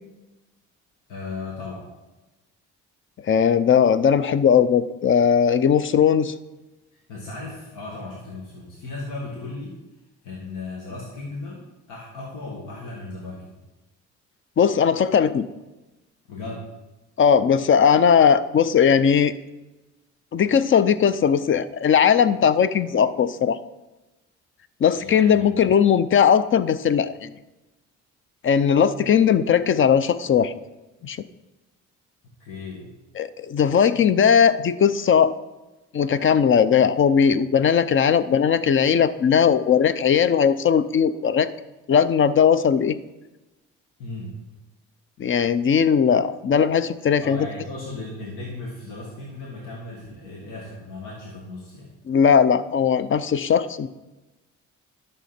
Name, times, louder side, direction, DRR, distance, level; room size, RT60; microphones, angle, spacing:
voice 1, 1.1-1.9 6.9-9.8 10.2-13.6 16.3-16.7 25.0-25.7 32.4-32.9 44.0-44.4 47.2-51.9, left 2 dB, 85° left, -3 dB, 2.0 m, -36 dB
voice 2, 3.3-6.3 14.6-15.4 17.2-19.3 20.3-23.6 24.8-27.3 28.4-30.5 31.0-31.2 33.2-35.3 35.9-41.5 41.9-43.0 45.2-47.5 52.1-53.9, left 7 dB, 40° left, 14 dB, 0.6 m, -18 dB
11.0 x 6.6 x 4.3 m, 1.1 s
cardioid pair, 90°, 30 cm